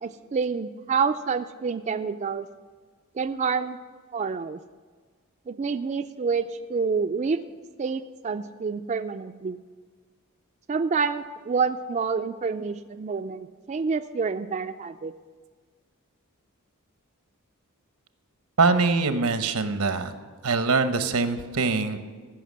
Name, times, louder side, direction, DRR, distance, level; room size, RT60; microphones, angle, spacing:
voice 1, 0.0-2.5 3.2-3.8 4.1-4.6 5.5-7.4 7.8-9.6 10.7-15.1, right 5 dB, 35° right, 8 dB, 0.3 m, -28 dB
voice 2, 18.6-20.1 20.4-22.0, right 4 dB, 85° right, 10 dB, 0.9 m, -23 dB
15.0 x 5.9 x 7.4 m, 1.5 s
head